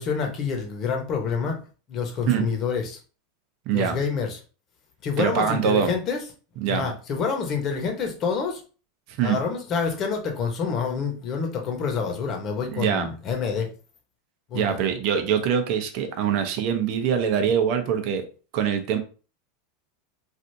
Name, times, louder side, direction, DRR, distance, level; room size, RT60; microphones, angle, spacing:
voice 1, 0.0-1.6 1.9-3.0 3.7-4.4 5.0-6.2 6.7-8.6 9.2-13.7 14.5-14.8, left 5 dB, 40° left, 3 dB, 1.0 m, -27 dB
voice 2, 3.7-4.0 5.2-5.9 6.6-6.9 9.2-9.4 12.7-13.1 14.5-18.3 18.5-19.0, right 8 dB, 55° right, 6 dB, 0.7 m, -23 dB
3.3 x 2.6 x 2.7 m, 0.36 s
supercardioid pair, 125°, 0 cm